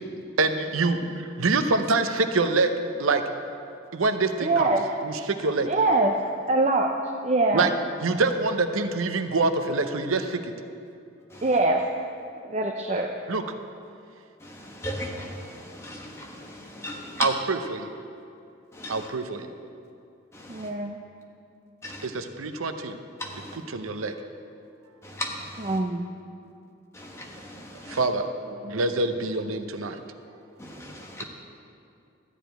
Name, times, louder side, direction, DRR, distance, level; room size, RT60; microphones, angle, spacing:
voice 1, 0.4-1.0 1.4-2.7 3.0-3.2 3.9-4.7 5.0-5.7 7.5-7.7 8.0-10.5 13.3-13.4 17.2-17.3 17.7-17.9 18.9-19.5 22.1-23.0 23.7-24.1 27.9-28.2 28.7-30.0, right 3 dB, 90° right, 8 dB, 0.7 m, -25 dB
voice 2, 4.4-4.9 5.7-6.2 6.5-6.9 7.2-7.7 11.4-11.8 12.5-13.1 20.5-21.0 25.7-26.1 28.5-28.8, right 2 dB, 30° right, 2 dB, 0.5 m, -23 dB
voice 3, 14.4-17.4 18.7-19.1 20.3-20.7 21.8-22.1 23.2-23.6 25.0-25.8 26.9-28.1 30.6-31.2, left 1 dB, 15° left, 0 dB, 1.1 m, -37 dB
13.0 x 5.0 x 9.0 m, 2.5 s
head